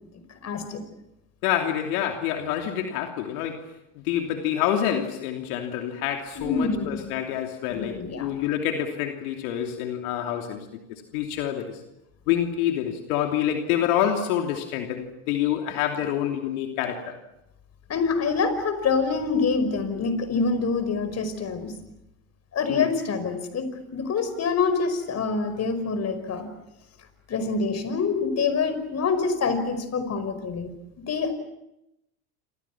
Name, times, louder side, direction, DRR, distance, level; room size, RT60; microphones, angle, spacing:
voice 1, 0.4-0.8 6.4-7.0 7.7-8.3 17.9-21.7 22.5-23.7 23.9-26.5 27.3-30.7 31.1-31.3, left 4 dB, 35° left, 11 dB, 5.4 m, -26 dB
voice 2, 1.4-3.7 4.0-11.8 12.3-17.2 22.7-22.9, left 10 dB, 70° left, 3 dB, 3.1 m, -27 dB
28.5 x 27.0 x 6.0 m, 0.86 s
hypercardioid pair, 100°, 45 cm